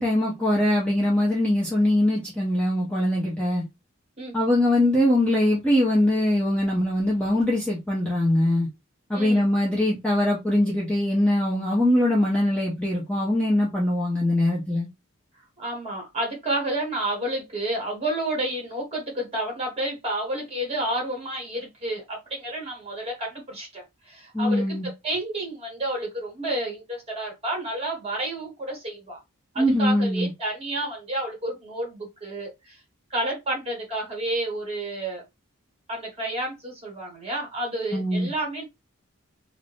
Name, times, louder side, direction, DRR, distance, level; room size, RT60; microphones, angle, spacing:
voice 1, 0.0-3.6 4.3-8.7 9.1-14.9 24.3-24.9 29.6-30.3 37.9-38.3, left 1 dB, 5° left, 0.6 m, -22 dB
voice 2, 15.6-29.2 29.5-32.8 33.1-35.2 35.9-38.6, right 1 dB, 25° right, 1.3 m, -30 dB
2.5 x 2.5 x 3.4 m
head